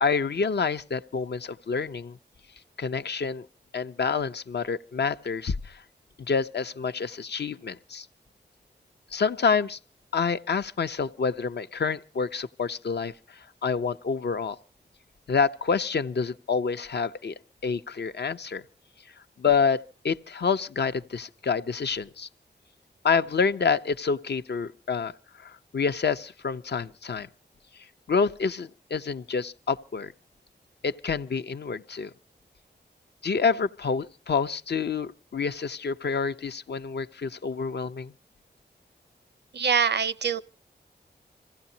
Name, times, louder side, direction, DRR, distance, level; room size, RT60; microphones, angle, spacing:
voice 1, 0.0-2.2 2.8-3.5 3.7-5.8 6.3-8.1 9.1-9.8 10.1-13.1 13.6-14.6 15.3-17.3 17.6-18.6 19.4-19.8 20.0-22.3 23.0-25.1 25.4-27.3 28.1-30.1 30.8-32.1 33.2-38.1, left 5 dB, 65° left, 0.7 m, -27 dB
voice 2, 39.5-40.4, right 6 dB, 65° right, 0.7 m, -24 dB
26.5 x 16.0 x 2.8 m
wide cardioid pair, 60°, 19 cm